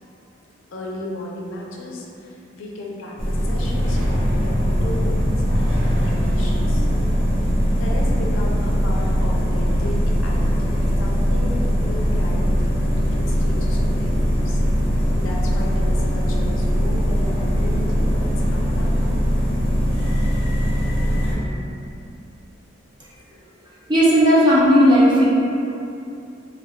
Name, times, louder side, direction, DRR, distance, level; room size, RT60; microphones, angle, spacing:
voice 1, 0.7-6.9 7.8-14.6 14.9-19.1, left 1 dB, 70° left, -2 dB, 0.4 m, -35 dB
sound 1, 3.2-21.4, equal, 25° left, 0.6 m, -20 dB
voice 2, 23.9-25.2, equal, 20° right, -7 dB, 0.4 m, -14 dB
2.3 x 2.1 x 3.3 m, 2.7 s
head